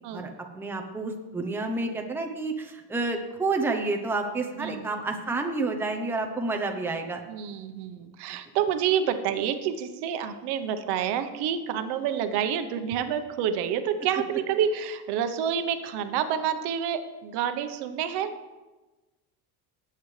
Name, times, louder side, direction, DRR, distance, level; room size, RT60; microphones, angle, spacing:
voice 1, 0.1-7.2, right 3 dB, 5° right, 3 dB, 0.8 m, -29 dB
voice 2, 4.6-4.9 7.3-18.3, right 8 dB, 70° right, 9 dB, 1.0 m, -28 dB
18.5 x 8.0 x 3.3 m, 1.2 s
cardioid pair, 160°, 41 cm